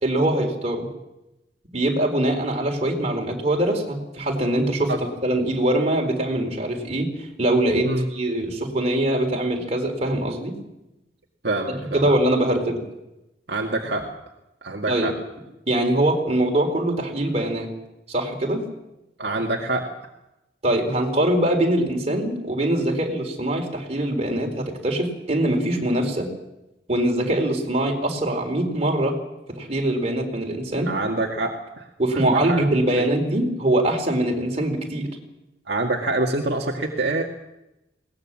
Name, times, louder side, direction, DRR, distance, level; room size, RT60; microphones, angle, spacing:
voice 1, 0.0-0.9 1.7-4.9 5.2-7.1 7.4-10.6 11.9-12.8 14.9-15.1 15.7-17.7 18.1-18.7 20.6-26.3 26.9-29.2 29.5-30.9 32.0-35.1, right 1 dB, 35° right, 2 dB, 4.1 m, -23 dB
voice 2, 11.4-12.1 13.5-14.2 14.6-15.1 19.2-19.9 30.9-31.9 32.1-32.7 33.0-33.1 35.7-37.2, right 2 dB, 65° right, 0 dB, 2.0 m, -26 dB
21.5 x 19.0 x 7.5 m, 0.94 s
head